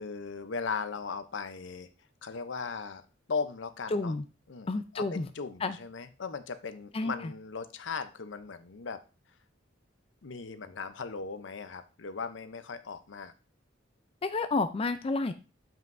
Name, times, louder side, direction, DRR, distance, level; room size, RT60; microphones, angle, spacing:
voice 1, 0.0-1.9 2.2-3.0 3.3-4.1 4.5-9.0 10.2-13.3, left 5 dB, 70° left, 11 dB, 0.6 m, -38 dB
voice 2, 3.9-4.2 4.7-5.3 5.6-5.8 6.9-7.3 14.2-15.3, left 3 dB, 30° left, 10 dB, 0.4 m, -30 dB
7.4 x 5.4 x 2.6 m, 0.34 s
head